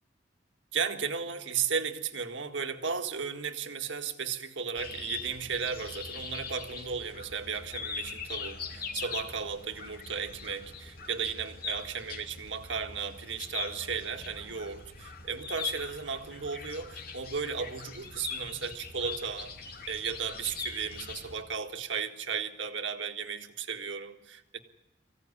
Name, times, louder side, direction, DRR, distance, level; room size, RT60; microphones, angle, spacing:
voice 1, 0.7-19.6 19.9-24.6, right 6 dB, 80° right, 6 dB, 1.8 m, -35 dB
sound 1, 4.7-21.4, left 5 dB, 55° left, 2.7 m, -41 dB
24.5 x 16.0 x 9.8 m, 1.0 s
head